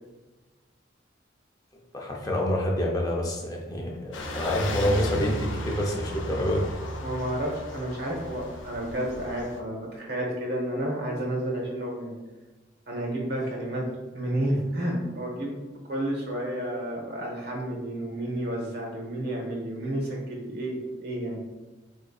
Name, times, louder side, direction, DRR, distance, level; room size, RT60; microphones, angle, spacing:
voice 1, 1.9-6.6, equal, 20° left, -1 dB, 0.5 m, -27 dB
sound 1, 4.1-9.6, left 1 dB, 80° left, 0.5 m, -35 dB
voice 2, 7.0-12.2 12.9-13.8 14.1-15.6 15.9-21.4, right 1 dB, 55° right, -1 dB, 0.8 m, -31 dB
3.8 x 2.6 x 2.3 m, 1.2 s
head